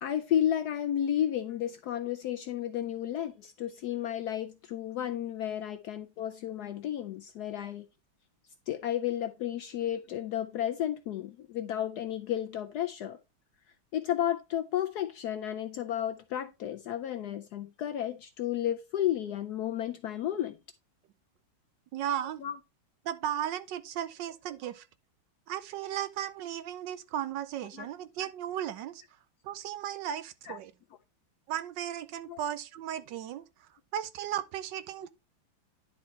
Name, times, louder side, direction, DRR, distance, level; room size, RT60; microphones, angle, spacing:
voice 1, 0.0-7.8 8.7-13.2 13.9-20.6 22.4-22.6 27.7-27.9 30.5-30.6 32.3-32.4, left 11 dB, 75° left, 0.9 m, -32 dB
voice 2, 21.9-22.4 23.0-24.9 25.5-29.0 29.4-30.7 31.5-33.4 33.9-35.1, right 10 dB, 70° right, 1.2 m, -35 dB
10.5 x 4.1 x 4.1 m
omnidirectional pair, 2.2 m